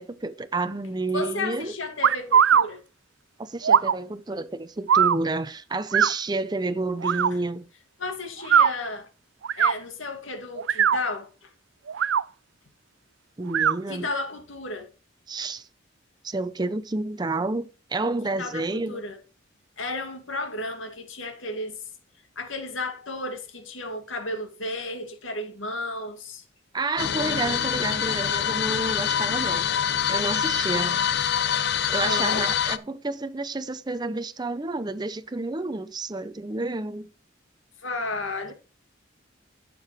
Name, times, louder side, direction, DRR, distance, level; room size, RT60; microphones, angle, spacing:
voice 1, 0.0-1.7 3.4-7.7 13.4-14.1 15.3-15.7 16.2-19.0 26.7-29.7 30.1-31.0 31.9-37.1, right 2 dB, 20° right, 0.6 m, -30 dB
voice 2, 1.1-2.8 7.3-7.4 8.0-9.1 9.6-11.5 13.9-14.9 18.2-19.2 19.8-21.8 22.4-26.4 32.0-32.5 37.8-38.5, left 2 dB, 85° left, 2.1 m, -33 dB
sound 1, 2.0-2.7 3.6-4.0 4.9-5.2 5.9-6.1 7.0-7.3 8.4-8.7 9.4-9.7 10.6-11.0 11.9-12.2 13.5-13.8, right 8 dB, 70° right, 0.4 m, -19 dB
sound 2, 27.0-32.8, left 9 dB, 55° left, 0.6 m, -25 dB
11.5 x 7.6 x 3.1 m
head